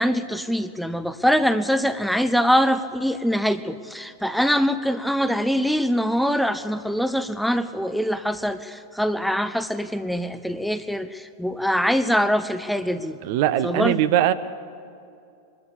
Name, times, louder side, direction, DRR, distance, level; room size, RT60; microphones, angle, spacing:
voice 1, 0.0-13.2 13.6-14.0, equal, ahead, 11 dB, 0.7 m, -23 dB
voice 2, 13.2-14.3, right 12 dB, 50° right, 12 dB, 0.9 m, -20 dB
24.0 x 13.0 x 8.7 m, 2.5 s
figure-of-eight pair, 90°, 0 cm